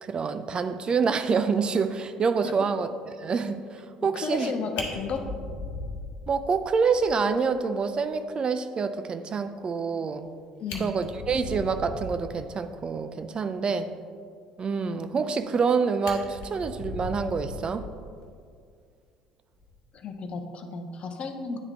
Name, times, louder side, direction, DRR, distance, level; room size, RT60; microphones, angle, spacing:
voice 1, 0.0-2.9 3.2-4.5 6.3-10.3 10.8-13.9 14.6-17.9, right 5 dB, 35° right, 10 dB, 0.3 m, -27 dB
voice 2, 4.1-5.3 10.6-10.9 19.9-21.6, left 5 dB, 45° left, 6 dB, 0.6 m, -33 dB
Fire, 4.4-4.5 4.7-6.7 7.0-7.1 7.5-7.6 8.0-8.1 10.2-10.3 10.6-12.3 15.1-15.7 16.0-18.2 19.5-19.7, left 2 dB, 70° left, 0.9 m, -38 dB
9.1 x 3.6 x 3.4 m, 2.2 s
hypercardioid pair, 60°, 3 cm